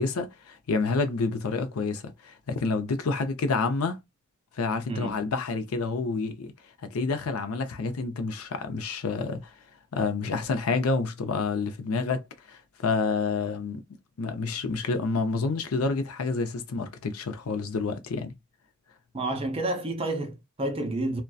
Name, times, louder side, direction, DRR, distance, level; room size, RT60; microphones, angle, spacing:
voice 1, 0.0-4.0 4.6-6.5 6.9-9.5 9.9-13.8 14.2-18.3, left 4 dB, 75° left, 0.5 m, -28 dB
voice 2, 19.1-21.2, right 2 dB, 25° right, 0.6 m, -30 dB
2.5 x 2.1 x 2.2 m
head